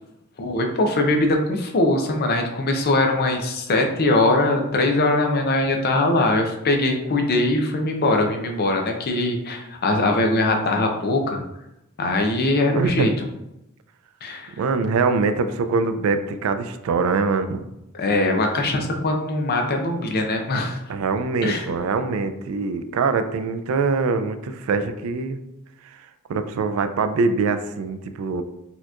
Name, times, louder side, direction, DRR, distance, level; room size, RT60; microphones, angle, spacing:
voice 1, 0.4-11.4 12.0-13.1 14.2-14.5 17.9-20.8 21.4-21.7, left 2 dB, 45° left, 3 dB, 0.5 m, -21 dB
voice 2, 12.7-13.1 14.6-17.6 20.9-25.4 26.3-28.4, right 4 dB, 70° right, 9 dB, 0.3 m, -23 dB
4.2 x 2.8 x 2.4 m, 0.89 s
head